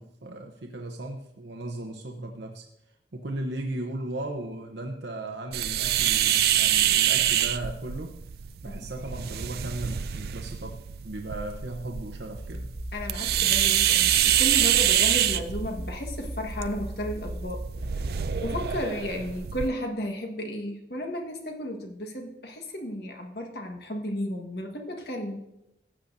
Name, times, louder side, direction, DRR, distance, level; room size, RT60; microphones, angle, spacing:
voice 1, 0.0-2.7 3.1-8.2 8.6-12.7, right 1 dB, 80° right, 2 dB, 0.8 m, -36 dB
sound 1, 5.5-19.7, right 11 dB, 60° right, 0.4 m, -26 dB
sound 2, 12.3-18.8, equal, 35° right, 2.7 m, -38 dB
voice 2, 12.9-17.6 18.4-25.4, left 1 dB, 65° left, 3 dB, 1.5 m, -33 dB
14.5 x 8.6 x 2.7 m, 0.86 s
head